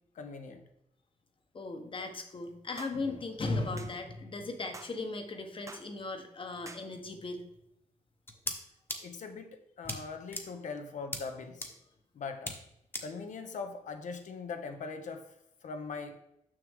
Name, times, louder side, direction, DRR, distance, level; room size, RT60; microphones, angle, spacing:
voice 1, 0.1-0.6 9.0-11.7 12.1-12.6 13.0-15.2 15.6-16.2, left 4 dB, 70° left, 7 dB, 1.0 m, -41 dB
voice 2, 1.5-7.5, left 3 dB, 40° left, 6 dB, 1.1 m, -37 dB
sound 1, 2.8-3.0 3.8-4.0 4.7-5.0 5.7-5.9 6.7-6.9, right 3 dB, 25° right, 0.6 m, -47 dB
sound 2, 8.3-8.6 8.9-9.0 9.8-10.0 10.3-10.4 11.1-11.2 11.6-11.7 12.5-12.6 12.9-13.0, left 1 dB, 15° left, 1.1 m, -35 dB
6.5 x 6.2 x 3.6 m, 0.82 s
cardioid pair, 95°, 13 cm